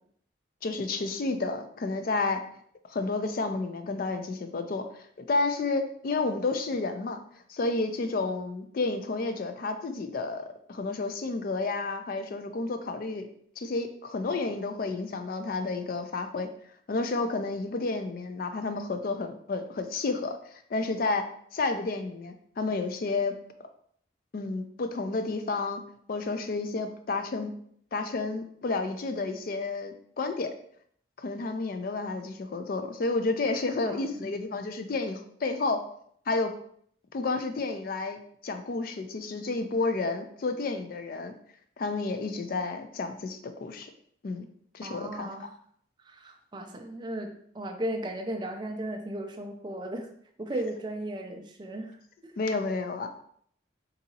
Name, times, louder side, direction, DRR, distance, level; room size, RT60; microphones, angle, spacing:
voice 1, 0.6-2.4 2.9-4.8 5.2-7.2 7.5-13.3 13.6-16.5 16.9-21.2 21.5-23.3 24.3-25.8 26.1-27.5 27.9-30.5 31.2-35.8 36.3-36.5 37.1-41.3 41.8-43.9 44.2-44.4 44.7-45.5 52.4-53.1, left 3 dB, 50° left, 7 dB, 0.3 m, -31 dB
voice 2, 33.9-34.3 44.8-45.5 46.1-50.1 50.4-52.0 52.2-52.3, right 1 dB, 25° right, 4 dB, 0.3 m, -36 dB
3.9 x 2.7 x 2.7 m, 0.64 s
head